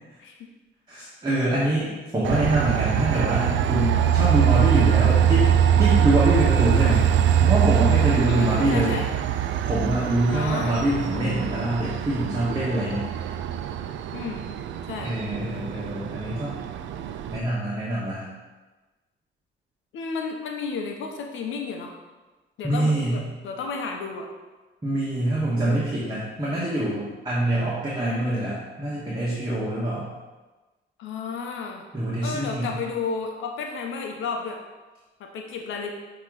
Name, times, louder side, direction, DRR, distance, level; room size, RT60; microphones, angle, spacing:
voice 1, 0.9-5.5 5.8-9.0 9.6-13.1 15.0-16.6 17.3-18.2 22.6-23.2 24.8-30.0 31.9-32.8, right 1 dB, 20° right, -8 dB, 1.6 m, -25 dB
Train, 2.2-17.4, right 9 dB, 70° right, 0.4 m, -23 dB
voice 2, 8.3-9.1 10.3-10.8 14.1-14.5 14.9-15.1 19.9-22.0 22.6-24.3 25.4-25.9 31.0-31.8 32.2-34.6 35.2-35.9, left 5 dB, 80° left, 2 dB, 0.8 m, -32 dB
8.0 x 3.0 x 3.9 m, 1.2 s
cardioid pair, 90°, 20 cm